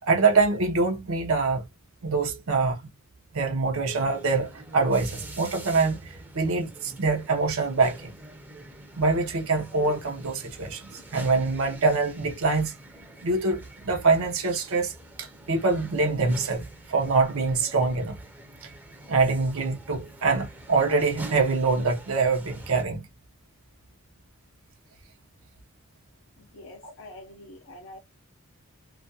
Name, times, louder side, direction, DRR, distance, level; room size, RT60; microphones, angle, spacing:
voice 1, 0.1-1.6 2.0-2.8 3.3-8.2 9.0-12.7 13.2-18.2 18.6-18.7 19.1-23.1 26.8-26.9, right 3 dB, 70° right, 0.6 m, -25 dB
sound 1, 3.9-22.8, right 1 dB, 10° right, 0.5 m, -45 dB
voice 2, 26.4-28.0, left 1 dB, 60° left, 0.5 m, -46 dB
2.4 x 2.2 x 2.6 m
head